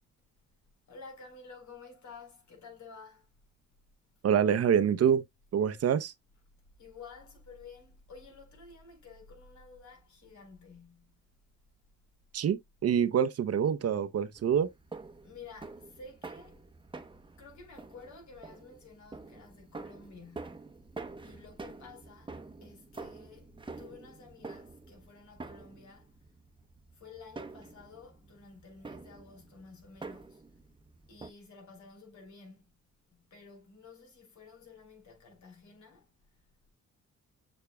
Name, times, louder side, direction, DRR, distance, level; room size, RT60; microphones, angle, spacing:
voice 1, 0.9-3.3 6.3-6.4 6.8-11.1 15.2-16.6 17.4-20.6 21.2-26.1 26.9-30.4 31.1-32.6 33.1-36.1, left 4 dB, 70° left, 4.1 m, -52 dB
voice 2, 4.2-5.2 5.5-6.1 12.3-14.7, right 8 dB, 55° right, 0.8 m, -26 dB
sound 1, 14.4-31.3, right 3 dB, 15° right, 0.9 m, -48 dB
6.9 x 6.4 x 2.2 m
cardioid pair, 90°, 30 cm